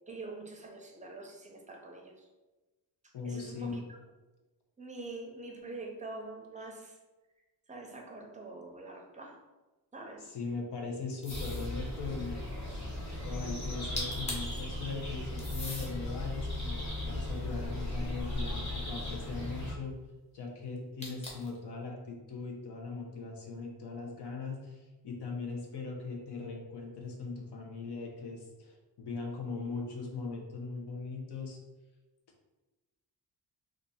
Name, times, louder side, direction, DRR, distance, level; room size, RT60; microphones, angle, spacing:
voice 1, 0.1-2.1 3.2-3.8 4.8-7.0 7.7-9.4 9.9-10.3, right 2 dB, 20° right, 1 dB, 0.5 m, -45 dB
voice 2, 3.1-3.8 10.2-12.4 12.7-12.8 13.2-19.9 20.3-31.6, left 4 dB, 75° left, 0 dB, 0.9 m, -40 dB
sound 1, 11.2-11.7 13.7-13.8 14.0-14.6 15.4-15.9 16.6-18.1 21.0-21.6, left 1 dB, 15° left, 0.7 m, -41 dB
sound 2, 11.3-19.7, left 1 dB, 40° left, 1.2 m, -37 dB
2.7 x 2.5 x 4.1 m, 1.1 s
wide cardioid pair, 130°, 41 cm